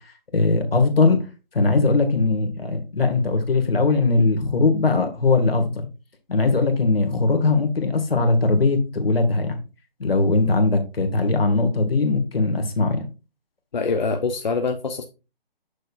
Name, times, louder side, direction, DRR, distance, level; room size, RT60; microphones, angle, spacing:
voice 1, 0.3-1.2 1.5-5.9 6.3-9.6 10.0-13.1, left 3 dB, 75° left, 1.8 m, -20 dB
voice 2, 13.7-15.0, left 4 dB, 50° left, 0.7 m, -24 dB
6.6 x 6.3 x 2.4 m
hypercardioid pair, 170°, 29 cm